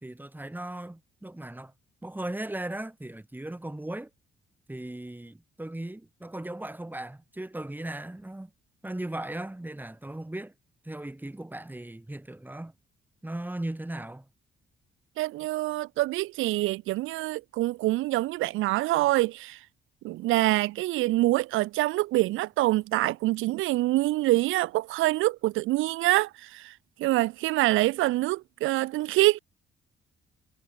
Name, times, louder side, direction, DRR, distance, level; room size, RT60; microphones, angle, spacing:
voice 1, 0.0-1.7 2.0-4.1 4.7-8.5 8.8-10.5 10.8-12.7 13.2-14.3, right 1 dB, 10° right, 4.0 m, -37 dB
voice 2, 15.2-19.6 20.0-26.7 27.0-29.4, right 18 dB, 85° right, 0.5 m, -25 dB
cardioid pair, 90°, 20 cm